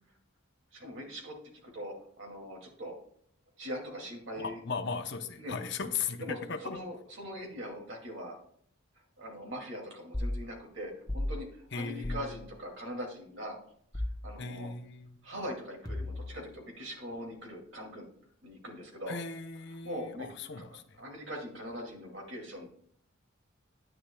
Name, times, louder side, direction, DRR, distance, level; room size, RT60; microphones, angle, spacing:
voice 1, 0.7-3.0 3.6-4.6 5.4-5.6 6.2-8.4 9.2-13.6 13.9-14.7 15.2-18.1 18.4-19.2 19.8-20.3 21.0-22.7, equal, 60° right, 1 dB, 2.4 m, -41 dB
voice 2, 4.4-6.8 11.7-12.3 14.4-15.2 19.1-21.0, left 5 dB, 55° left, 7 dB, 0.7 m, -37 dB
sound 1, 10.1-10.4 11.1-11.3 12.0-12.3 13.9-14.3 15.9-16.4, left 1 dB, 15° left, 1.0 m, -34 dB
10.0 x 9.9 x 2.3 m, 0.63 s
head